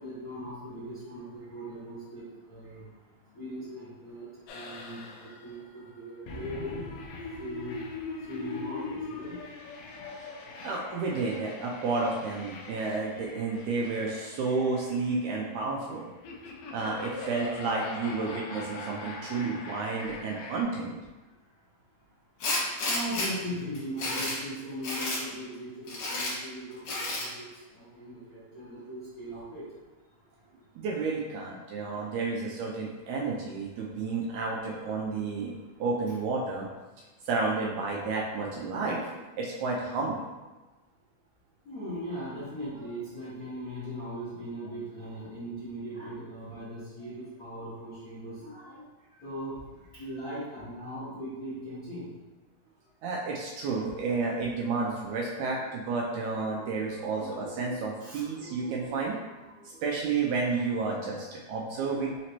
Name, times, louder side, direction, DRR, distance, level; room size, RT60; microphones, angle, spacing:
voice 1, 0.0-2.9 3.3-6.9 7.3-7.8 8.3-9.4 11.3-11.4 13.4-13.6 22.9-29.6 33.2-33.3 34.3-34.4 41.6-48.8 49.1-49.6 49.9-52.1 57.2-57.3 58.0-58.3, equal, 40° left, -14 dB, 1.3 m, -39 dB
sound 1, 4.5-20.6, left 3 dB, 80° left, 1.5 m, -42 dB
voice 2, 10.6-16.1 16.7-21.0 30.8-35.5 35.8-36.7 37.3-39.0 39.4-40.3 53.0-62.2, right 4 dB, 80° right, -2 dB, 1.8 m, -31 dB
Tools, 22.4-23.3 23.7-24.4 24.8-25.2 25.9-26.3 26.8-27.3, left 2 dB, 60° left, 2.3 m, -31 dB
5.1 x 2.9 x 2.8 m, 1.2 s
omnidirectional pair, 3.7 m